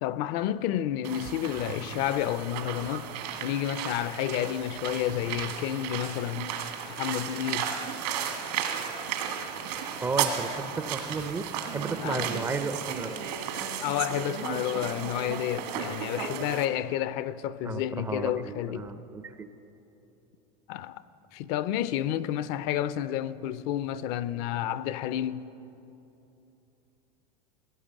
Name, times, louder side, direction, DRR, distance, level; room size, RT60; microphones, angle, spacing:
voice 1, 0.0-3.1 3.4-6.5 7.0-7.7 12.0-12.3 13.8-18.9 20.7-21.0 21.3-25.4, left 12 dB, 50° left, 0.5 m, -30 dB
sound 1, 1.0-16.7, right 8 dB, 80° right, 1.9 m, -34 dB
voice 2, 10.0-13.1 17.6-19.5, right 4 dB, 15° right, 0.4 m, -34 dB
16.5 x 9.6 x 7.3 m
supercardioid pair, 150°, 21 cm